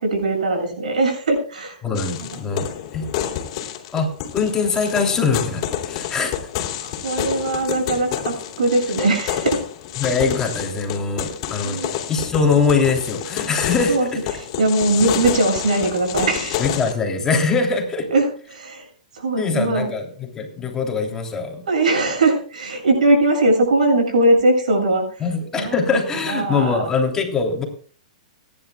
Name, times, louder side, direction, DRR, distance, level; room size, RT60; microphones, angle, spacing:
voice 1, 0.0-1.8 6.8-9.6 11.6-12.0 13.9-16.6 18.1-19.9 21.7-26.0 26.3-26.8, right 2 dB, 90° right, 3 dB, 7.2 m, -20 dB
voice 2, 1.8-3.1 3.9-6.3 10.0-11.8 12.1-14.0 16.6-18.1 19.4-21.6 25.2-27.6, left 4 dB, 15° left, 2 dB, 3.1 m, -22 dB
sound 1, 1.9-16.9, left 10 dB, 45° left, 3.1 m, -29 dB
28.0 x 10.5 x 2.3 m, 0.43 s
hypercardioid pair, 145°, 4 cm